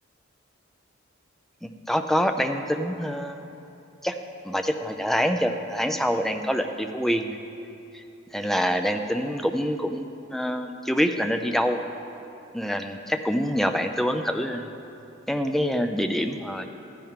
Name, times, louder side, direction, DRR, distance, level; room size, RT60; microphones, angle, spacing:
voice 1, 1.6-3.4 4.0-4.2 4.4-7.4 7.9-8.0 8.3-11.8 12.5-14.7 15.3-16.7, equal, ahead, 6 dB, 0.4 m, -26 dB
14.0 x 10.0 x 3.7 m, 2.8 s
head